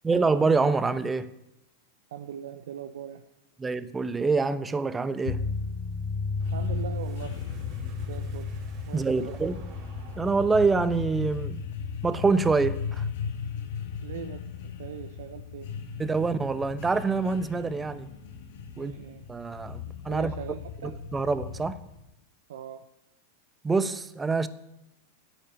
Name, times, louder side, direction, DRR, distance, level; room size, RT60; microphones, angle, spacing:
voice 1, 0.0-1.3 3.6-5.4 8.9-9.6 10.2-11.6 12.0-13.1 16.0-18.1 18.8-18.9 19.3-20.3 20.8-21.8 23.6-24.5, right 4 dB, 15° right, 0.9 m, -26 dB
voice 2, 2.1-3.2 6.5-7.4 8.1-8.5 8.9-9.4 14.0-16.3 18.8-19.3 19.9-21.0 22.5-22.9, right 8 dB, 70° right, 0.8 m, -41 dB
sound 1, 5.2-22.0, left 5 dB, 65° left, 1.8 m, -35 dB
sound 2, 6.2-11.3, right 1 dB, 45° right, 3.4 m, -49 dB
9.9 x 8.8 x 9.6 m
hypercardioid pair, 100°, 0 cm